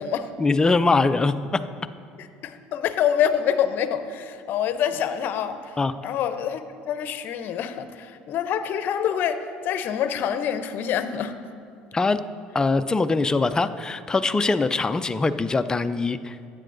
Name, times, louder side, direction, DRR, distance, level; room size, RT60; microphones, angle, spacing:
voice 1, 0.4-1.6 5.8-5.9 11.9-12.2 12.5-16.4, left 3 dB, 20° left, 10 dB, 0.4 m, -22 dB
voice 2, 2.2-5.8 6.0-11.3, left 9 dB, 60° left, 10 dB, 0.7 m, -26 dB
14.5 x 8.9 x 2.6 m, 2.3 s
supercardioid pair, 85°, 4 cm